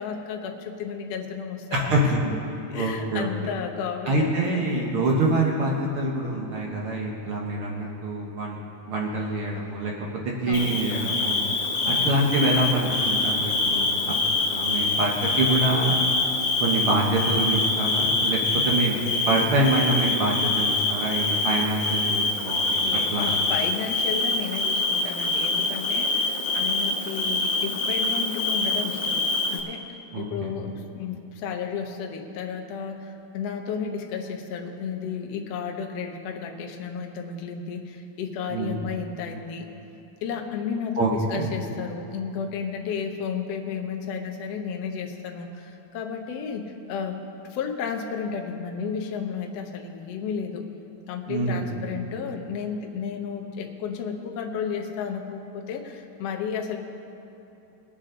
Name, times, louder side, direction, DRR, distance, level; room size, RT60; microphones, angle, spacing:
voice 1, 0.0-2.3 2.7-4.7 5.3-5.5 10.5-10.7 11.8-12.1 22.8-29.2 29.5-39.7 40.2-47.2 47.5-50.7 51.1-56.8, left 6 dB, 75° left, 3 dB, 1.4 m, -33 dB
voice 2, 1.7-2.0 2.7-3.3 4.1-8.6 8.9-9.9 10.2-11.4 11.9-14.1 14.5-15.9 16.6-18.4 18.6-23.3 30.1-30.5 38.5-38.8 41.0-41.5 51.3-51.9, right 2 dB, 85° right, -2 dB, 1.1 m, -25 dB
Bird / Cricket, 10.5-29.6, left 2 dB, 60° left, 1.7 m, -25 dB
22.5 x 8.3 x 3.8 m, 3.0 s
omnidirectional pair, 4.2 m